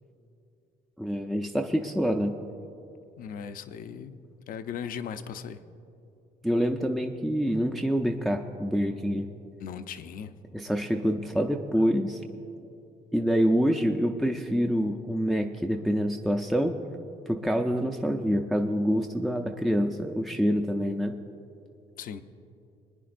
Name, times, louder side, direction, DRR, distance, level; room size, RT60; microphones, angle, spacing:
voice 1, 1.0-2.4 6.4-9.3 10.5-12.2 13.1-16.8 17.3-21.2, equal, ahead, 3 dB, 0.5 m, -26 dB
voice 2, 3.2-4.2 4.5-5.6 9.6-10.3 22.0-22.2, left 7 dB, 55° left, 11 dB, 0.6 m, -38 dB
24.0 x 9.7 x 2.6 m, 2.8 s
cardioid pair, 110°, 17 cm